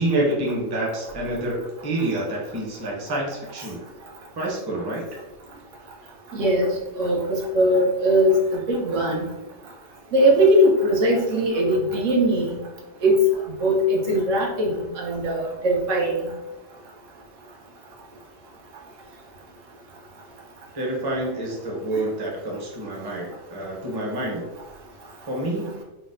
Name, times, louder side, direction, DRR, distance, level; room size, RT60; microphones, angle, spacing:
voice 1, 0.0-3.8 4.3-5.0 20.7-24.4 25.3-25.7, right 1 dB, 25° right, -2 dB, 0.5 m, -27 dB
voice 2, 6.3-9.2 10.1-12.6 13.0-13.2 13.6-16.2, equal, 90° right, -1 dB, 1.1 m, -20 dB
3.9 x 2.1 x 2.5 m, 1.0 s
omnidirectional pair, 1.3 m